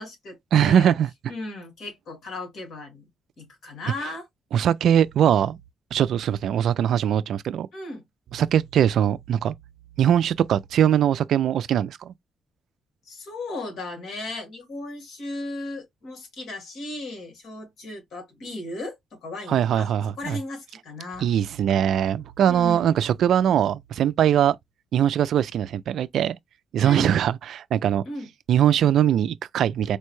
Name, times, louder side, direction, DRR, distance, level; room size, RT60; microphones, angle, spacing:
voice 1, 0.0-0.9 1.3-3.1 3.4-4.3 7.7-8.0 13.1-19.9 20.2-21.3 22.5-23.0 26.8-27.2 28.1-28.3, left 2 dB, 65° left, 1.9 m, -36 dB
voice 2, 0.5-1.1 4.5-5.6 5.9-7.7 8.3-9.5 10.0-12.1 19.5-20.4 21.2-24.6 24.9-26.4 26.7-28.0 28.5-30.0, right 9 dB, 70° right, 0.3 m, -21 dB
4.4 x 2.2 x 3.0 m
cardioid pair, 90°, 0 cm